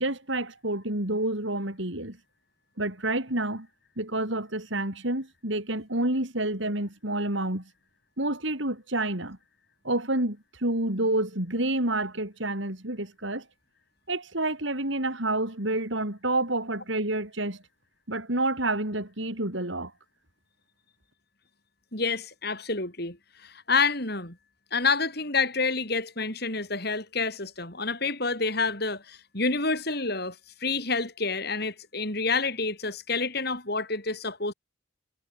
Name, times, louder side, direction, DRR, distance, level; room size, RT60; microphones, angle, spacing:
voice 1, 0.0-2.2 2.8-3.7 4.0-7.7 8.2-9.4 9.8-13.4 14.1-17.6 18.1-19.9, right 2 dB, 65° right, 5.0 m, -29 dB
voice 2, 21.9-24.4 24.7-34.5, left 4 dB, 50° left, 7.5 m, -28 dB
head